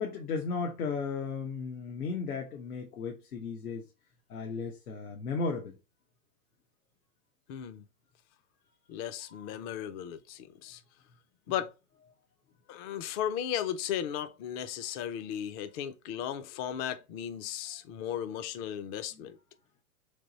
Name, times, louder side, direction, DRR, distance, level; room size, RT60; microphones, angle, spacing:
voice 1, 0.0-3.8 4.3-5.7 19.2-19.3, left 4 dB, 90° left, 1.0 m, -35 dB
voice 2, 7.5-7.8 8.9-10.8 11.5-11.7 12.7-19.4, left 10 dB, 30° left, 0.4 m, -36 dB
3.4 x 3.0 x 4.0 m
hypercardioid pair, 120°, 43 cm